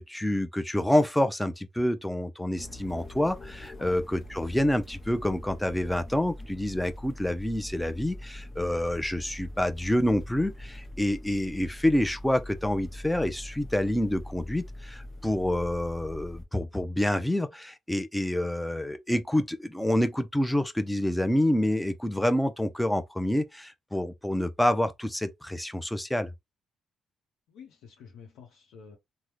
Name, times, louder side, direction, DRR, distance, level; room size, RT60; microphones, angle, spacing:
voice 1, 0.0-26.3, left 1 dB, 5° left, 0.5 m, -27 dB
sound 1, 2.6-16.4, left 1 dB, 30° left, 0.9 m, -43 dB
voice 2, 27.5-29.0, left 6 dB, 85° left, 0.7 m, -49 dB
3.5 x 2.1 x 2.9 m
cardioid pair, 90°, 0 cm